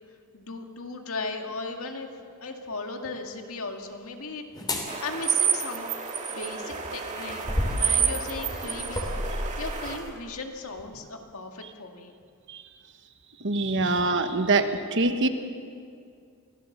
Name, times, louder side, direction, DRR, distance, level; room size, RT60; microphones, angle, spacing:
voice 1, 0.3-2.1 2.4-4.5 4.8-5.9 6.3-7.5 7.7-12.1 13.6-13.9, left 3 dB, 75° left, 4 dB, 2.0 m, -37 dB
sound 1, 4.5-4.9 6.6-10.1 10.8-10.9, left 1 dB, 20° left, 3.1 m, -32 dB
sound 2, 4.9-10.0, right 7 dB, 35° right, 2.1 m, -29 dB
voice 2, 13.4-15.3, right 3 dB, 55° right, 8 dB, 1.3 m, -24 dB
24.5 x 16.5 x 7.3 m, 2.3 s
head